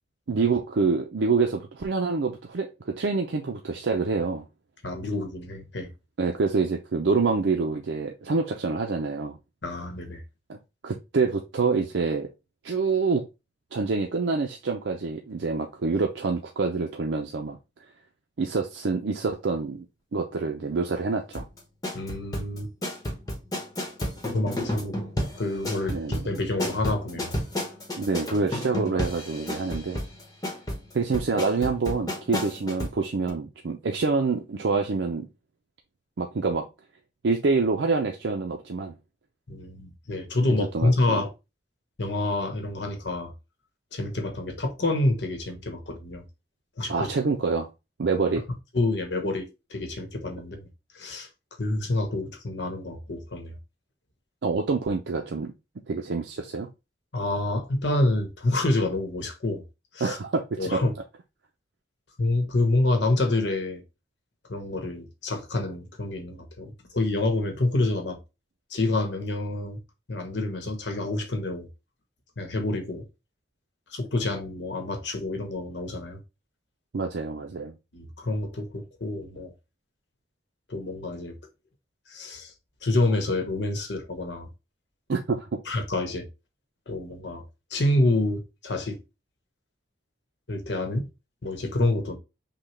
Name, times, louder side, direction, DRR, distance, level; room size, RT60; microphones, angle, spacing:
voice 1, 0.3-4.4 6.2-9.4 10.5-10.6 10.8-12.3 12.6-13.2 13.7-17.6 18.4-19.9 20.1-21.5 25.9-26.2 28.0-30.0 30.9-35.3 36.2-36.7 37.2-38.9 40.4-41.2 46.9-47.7 48.0-48.4 54.4-55.5 55.9-56.7 60.0-60.8 76.9-77.7 85.1-85.5, right 4 dB, 80° right, 0.5 m, -26 dB
voice 2, 4.8-5.9 9.6-10.2 21.9-22.7 24.2-25.0 25.4-27.3 39.5-41.3 42.0-43.3 43.9-46.2 46.8-47.1 48.7-50.7 50.9-51.3 51.6-53.5 57.1-59.6 59.9-60.2 60.6-60.9 62.2-63.8 64.5-68.2 68.7-69.8 70.1-71.7 72.4-73.0 73.9-76.2 77.9-79.5 80.7-81.4 82.1-82.5 82.8-84.5 85.7-86.3 86.9-87.4 87.7-89.0 90.5-91.1 91.4-92.2, left 2 dB, 70° left, 1.1 m, -27 dB
sound 1, 21.3-33.0 33.3-33.4, left 1 dB, 20° left, 1.1 m, -31 dB
5.8 x 2.3 x 3.2 m
head